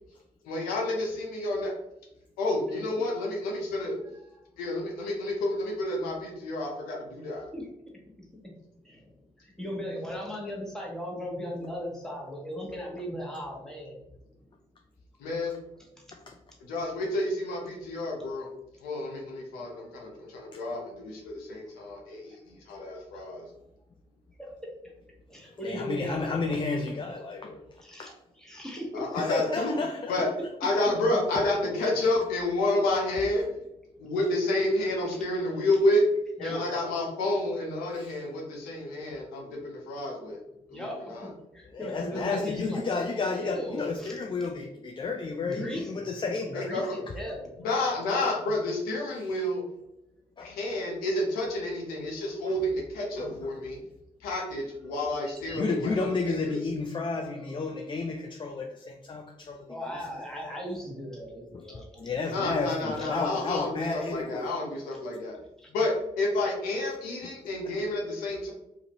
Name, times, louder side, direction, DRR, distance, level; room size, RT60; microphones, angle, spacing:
voice 1, 0.4-1.7 2.4-3.9 4.6-7.4 15.2-15.6 16.6-18.5 18.8-23.5 28.9-29.8 30.1-30.3 30.6-33.5 34.0-36.0 36.4-40.4 40.7-41.3 46.5-46.9 47.6-49.6 50.4-53.8 54.2-56.6 62.3-65.3 65.7-68.5, left 1 dB, 85° left, -1 dB, 0.7 m, -30 dB
voice 2, 8.8-14.0 15.8-16.1 22.3-22.4 23.1-23.2 24.4-24.5 25.3-26.6 27.8-29.2 30.6-30.8 34.0-34.1 35.1-35.3 36.4-36.8 40.7-42.8 43.3-44.5 45.4-47.6 55.1-55.6 57.5-57.7 59.7-62.1 63.0-63.1 65.6-65.7, equal, 5° left, -3 dB, 1.2 m, -38 dB
voice 3, 25.6-27.7 28.0-28.1 29.1-30.2 31.3-31.4 37.9-38.2 41.7-46.9 49.2-49.3 50.4-50.5 52.5-52.6 53.2-53.4 55.5-60.0 60.4-60.5 61.5-61.6 62.0-64.5 67.2-67.3, left 3 dB, 35° left, 3 dB, 0.4 m, -32 dB
2.6 x 2.5 x 2.9 m, 0.87 s
supercardioid pair, 45°, 15 cm